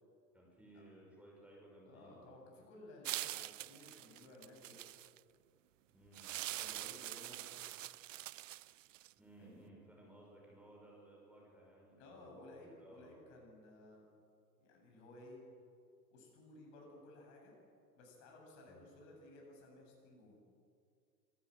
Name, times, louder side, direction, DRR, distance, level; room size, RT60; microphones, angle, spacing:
voice 1, 0.3-2.3 5.9-6.4 9.2-13.2 18.7-18.9, right 1 dB, 5° right, -3 dB, 5.6 m, -59 dB
voice 2, 1.8-4.9 6.6-7.8 9.4-9.7 12.0-14.0 14.6-15.4 16.1-17.5 17.9-20.4, left 2 dB, 45° left, 0 dB, 7.7 m, -57 dB
sound 1, 3.0-5.2 6.1-9.1, right 14 dB, 55° right, 0.5 m, -44 dB
26.0 x 13.0 x 7.9 m, 2.3 s
figure-of-eight pair, 100°, 49 cm